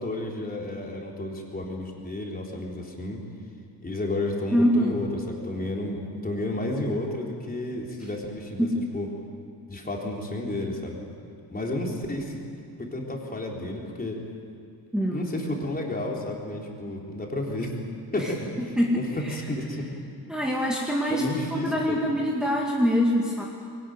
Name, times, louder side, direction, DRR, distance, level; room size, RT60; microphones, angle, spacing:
voice 1, 0.0-3.2 3.8-8.7 8.9-9.1 9.7-11.0 11.5-12.4 12.8-14.2 15.1-17.7 18.1-19.9 21.1-22.0, left 1 dB, 25° left, -1 dB, 4.0 m, -31 dB
voice 2, 4.5-5.0 8.6-8.9 14.9-15.3 18.2-18.3 18.8-19.4 20.3-23.4, equal, ahead, -3 dB, 2.2 m, -25 dB
21.5 x 19.0 x 9.6 m, 2.4 s
cardioid pair, 125°, 38 cm